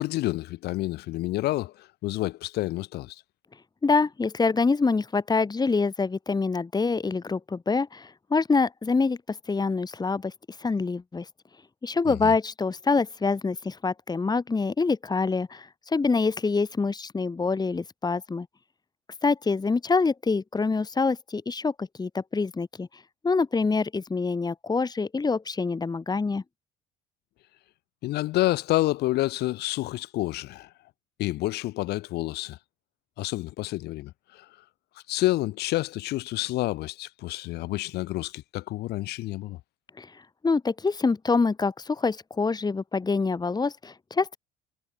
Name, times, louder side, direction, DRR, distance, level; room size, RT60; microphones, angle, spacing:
voice 1, 0.0-3.2 12.1-12.3 28.0-30.7 31.2-32.6 33.2-34.5 35.1-39.6, left 17 dB, 70° left, 2.5 m, -29 dB
voice 2, 3.8-10.3 10.6-11.3 11.8-18.5 19.2-22.9 23.2-26.4 40.0-44.4, left 4 dB, 25° left, 1.9 m, -26 dB
hypercardioid pair, 65°, 17 cm